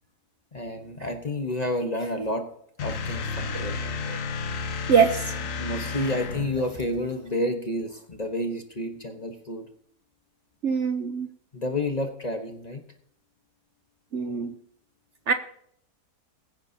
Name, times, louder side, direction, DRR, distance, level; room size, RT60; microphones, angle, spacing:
voice 1, 0.5-2.5 2.8-3.8 5.6-9.6 11.5-12.8, left 1 dB, 30° left, 5 dB, 1.0 m, -30 dB
sound 1, 2.8-6.7, left 4 dB, 60° left, 1.2 m, -32 dB
voice 2, 4.9-5.3 10.6-11.3 14.1-14.6 15.3-15.4, right 6 dB, 55° right, 8 dB, 0.9 m, -23 dB
22.0 x 9.5 x 2.8 m, 0.68 s
omnidirectional pair, 1.7 m